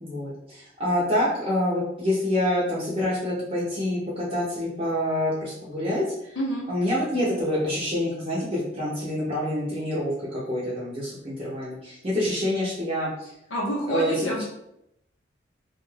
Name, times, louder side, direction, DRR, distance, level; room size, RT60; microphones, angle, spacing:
voice 1, 0.0-6.4 6.7-13.3 13.9-14.4, left 1 dB, 30° right, -8 dB, 0.7 m, -27 dB
voice 2, 6.4-6.7 13.5-14.4, equal, 80° left, -3 dB, 0.7 m, -28 dB
2.4 x 2.3 x 3.2 m, 0.80 s
head